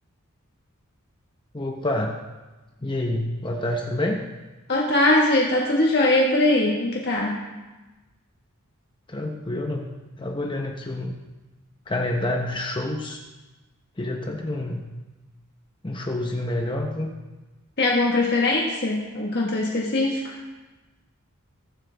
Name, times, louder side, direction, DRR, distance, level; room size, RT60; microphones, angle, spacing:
voice 1, 1.5-2.2 2.8-4.2 9.1-9.9 10.2-11.1 11.9-13.2 14.0-14.9 15.8-17.1, left 1 dB, 20° left, 2 dB, 0.9 m, -28 dB
voice 2, 4.7-7.4 17.8-20.4, left 2 dB, 50° left, -2 dB, 1.5 m, -21 dB
21.5 x 8.1 x 3.4 m, 1.2 s
head